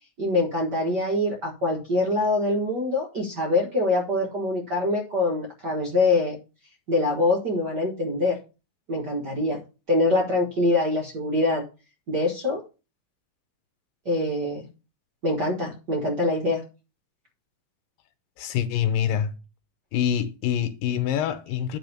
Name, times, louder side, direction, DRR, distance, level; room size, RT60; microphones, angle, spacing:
voice 1, 0.2-6.4 6.9-8.4 8.9-9.6 9.9-11.6 12.1-12.6 14.0-14.7 15.2-16.6, left 2 dB, 55° right, 1.2 m, -24 dB
voice 2, 18.4-19.3 19.9-21.8, left 9 dB, 90° left, 2.6 m, -25 dB
10.0 x 3.5 x 6.7 m
omnidirectional pair, 3.9 m